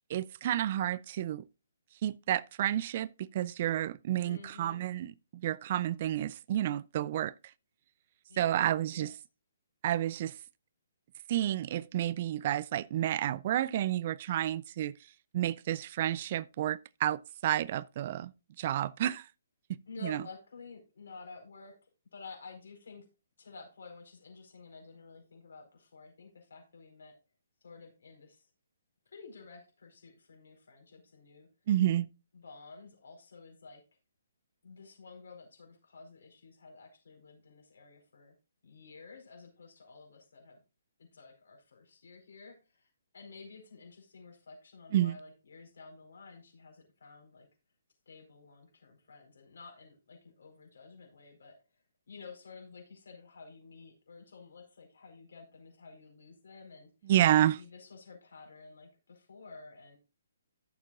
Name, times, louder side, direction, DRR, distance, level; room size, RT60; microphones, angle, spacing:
voice 1, 0.1-1.4 2.0-7.3 8.4-9.1 9.8-10.3 11.3-14.9 15.3-18.3 18.6-19.2 20.0-20.2 31.7-32.1 44.9-45.2 57.1-57.6, right 12 dB, 45° right, 0.4 m, -30 dB
voice 2, 4.2-4.8 8.3-8.6 8.9-9.1 19.9-21.7 22.1-23.0 23.4-27.1 27.6-28.5 29.1-31.5 32.3-33.8 34.6-38.3 38.6-40.6 41.0-47.5 48.1-57.1 57.4-60.0, left 4 dB, 70° left, 4.6 m, -52 dB
14.0 x 7.2 x 2.5 m
figure-of-eight pair, 135°, 0 cm